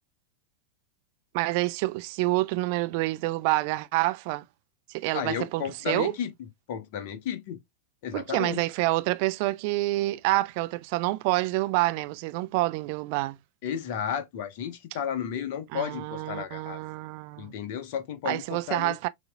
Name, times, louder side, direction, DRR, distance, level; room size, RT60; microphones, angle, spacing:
voice 1, 1.3-4.4 4.9-6.1 8.1-13.4 15.7-17.5 18.3-19.1, right 20 dB, 45° right, 0.4 m, -27 dB
voice 2, 5.1-6.3 6.7-7.6 8.0-8.6 13.6-16.8 17.4-19.1, left 8 dB, 50° left, 1.0 m, -33 dB
6.3 x 3.0 x 2.3 m
figure-of-eight pair, 90°, 0 cm